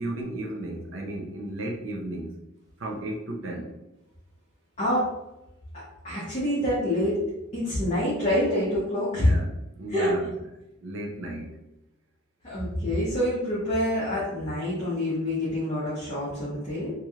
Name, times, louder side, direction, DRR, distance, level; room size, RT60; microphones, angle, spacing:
voice 1, 0.0-2.3 2.8-3.7 9.1-10.3 10.8-11.6, right 1 dB, 65° right, 0 dB, 0.6 m, -34 dB
voice 2, 4.8-5.1 5.7-7.2 7.5-9.3 9.9-10.1 12.4-16.9, left 1 dB, 30° left, -9 dB, 0.9 m, -26 dB
3.0 x 2.7 x 2.4 m, 0.93 s
head